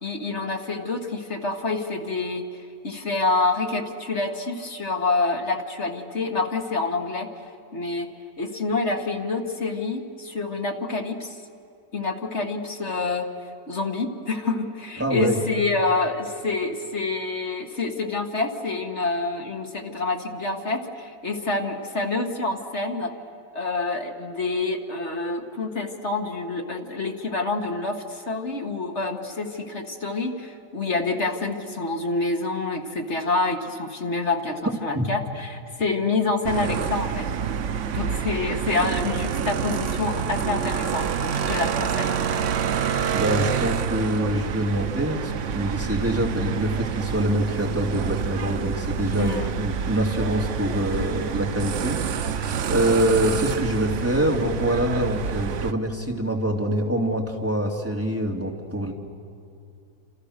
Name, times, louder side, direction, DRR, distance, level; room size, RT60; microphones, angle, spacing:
voice 1, 0.0-7.3 7.7-8.1 8.4-11.4 11.9-13.3 13.7-23.1 23.5-37.3 37.9-42.2 49.2-49.5, left 3 dB, 40° left, 4 dB, 1.9 m, -27 dB
voice 2, 15.0-15.4 34.9-35.1 43.1-58.9, right 1 dB, 5° right, 0 dB, 2.7 m, -25 dB
sound 1, 36.4-55.7, right 7 dB, 60° right, 0.8 m, -27 dB
28.5 x 27.5 x 6.6 m, 2.6 s
omnidirectional pair, 2.1 m